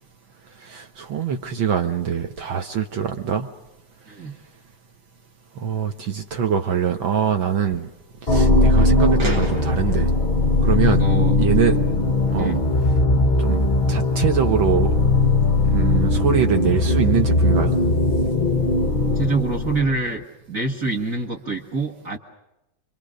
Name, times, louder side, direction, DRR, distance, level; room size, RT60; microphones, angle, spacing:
voice 1, 0.6-3.5 5.6-7.9 8.3-10.1 10.6-11.0 11.4-11.8 12.3-12.5 13.4-13.6 13.9-14.9 15.7-17.8, right 7 dB, 65° right, 6 dB, 1.9 m, -23 dB
sound 1, 8.3-20.1, left 2 dB, 45° left, 0.6 m, -19 dB
sound 2, 9.2-12.0 12.3-13.8 14.5-15.9 16.5-16.6 17.4-18.7, right 2 dB, 90° right, 5.2 m, -39 dB
voice 2, 10.9-11.4 12.4-12.7 19.1-20.2 20.5-22.2, right 3 dB, 40° right, 2 dB, 2.2 m, -25 dB
29.5 x 24.5 x 6.5 m, 0.94 s
omnidirectional pair, 2.4 m